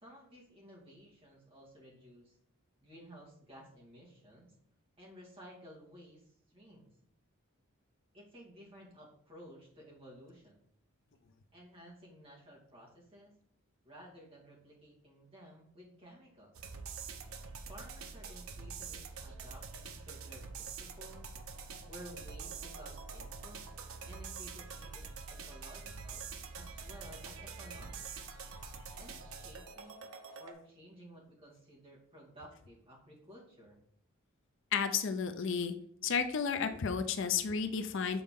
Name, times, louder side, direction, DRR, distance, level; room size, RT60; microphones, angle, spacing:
voice 1, 0.0-2.4 2.8-4.5 5.0-6.9 8.1-10.6 11.5-13.3 13.8-16.6 17.7-21.3 21.9-23.6 24.0-26.2 26.5-28.1 29.0-30.1 30.4-33.8, equal, 25° right, -4 dB, 2.0 m, -55 dB
sound 1, 16.5-30.5, right 5 dB, 80° right, 0.7 m, -46 dB
voice 2, 34.7-35.7 36.0-38.2, left 6 dB, 60° left, 8 dB, 0.5 m, -32 dB
6.9 x 4.2 x 3.6 m, 0.67 s
head